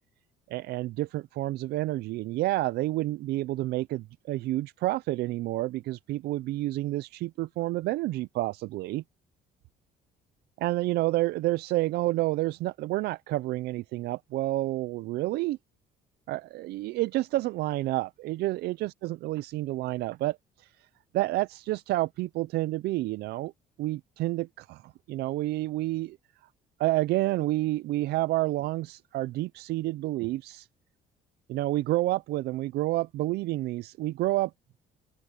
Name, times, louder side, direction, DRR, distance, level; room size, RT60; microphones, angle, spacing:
voice 1, 0.5-9.0 10.6-15.6 16.3-20.9 21.1-23.5 23.8-26.2 26.8-30.7 31.5-34.5, right 17 dB, 75° right, 0.5 m, -29 dB
open air
cardioid pair, 110°, 17 cm